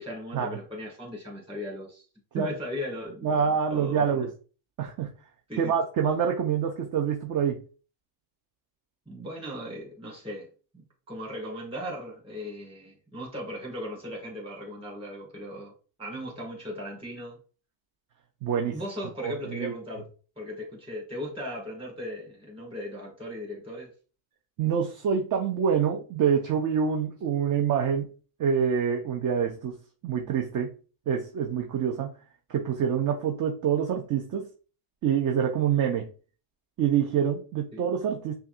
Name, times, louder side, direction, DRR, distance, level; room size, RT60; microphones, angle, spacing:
voice 1, 0.0-2.0 2.3-4.3 5.5-5.7 9.1-10.5 11.1-15.7 16.0-17.4 18.7-20.0 20.4-23.9 37.7-37.8, equal, 10° right, -2 dB, 2.1 m, -37 dB
voice 2, 3.2-4.3 4.8-5.1 5.6-7.6 18.4-18.8 19.2-19.7 24.6-28.1 28.4-29.8 30.0-30.7 31.1-32.1 32.5-34.5 35.0-36.1 36.8-38.3, right 7 dB, 40° right, 3 dB, 0.7 m, -26 dB
5.6 x 2.4 x 2.5 m, 0.37 s
cardioid pair, 130°, 48 cm